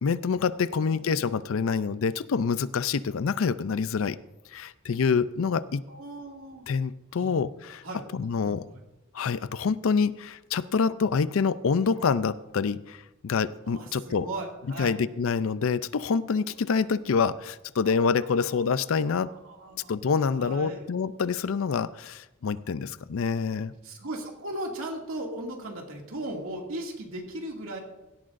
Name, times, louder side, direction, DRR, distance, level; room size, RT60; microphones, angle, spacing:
voice 1, 0.0-4.2 4.5-5.8 6.7-7.8 8.1-8.6 9.1-14.3 14.8-19.3 19.9-23.7, left 5 dB, 80° left, 16 dB, 0.4 m, -26 dB
voice 2, 0.7-1.2 5.9-6.7 7.1-7.3 7.8-8.3 8.6-8.8 13.6-15.0 17.8-18.8 19.3-20.8 23.8-27.8, right 1 dB, 85° right, 0 dB, 2.3 m, -38 dB
17.0 x 12.5 x 2.6 m, 1.0 s
head